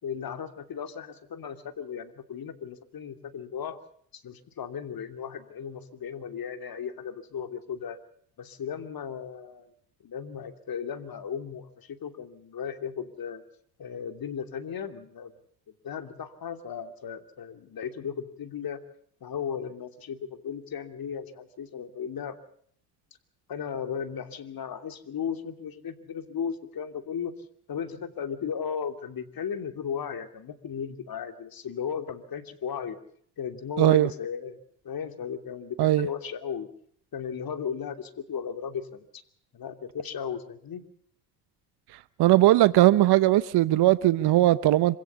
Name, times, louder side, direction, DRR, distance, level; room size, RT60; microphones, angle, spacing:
voice 1, 0.0-3.8 4.1-8.0 8.4-9.7 10.0-13.4 13.8-15.3 15.8-18.8 19.2-22.4 23.5-27.3 27.7-33.0 33.4-34.6 34.8-36.7 37.1-39.2 39.5-40.8, left 7 dB, 50° left, 2.8 m, -36 dB
voice 2, 33.8-34.1 35.8-36.1 41.9-45.0, right 15 dB, 55° right, 0.9 m, -20 dB
26.0 x 17.0 x 7.0 m
hypercardioid pair, 60°, 46 cm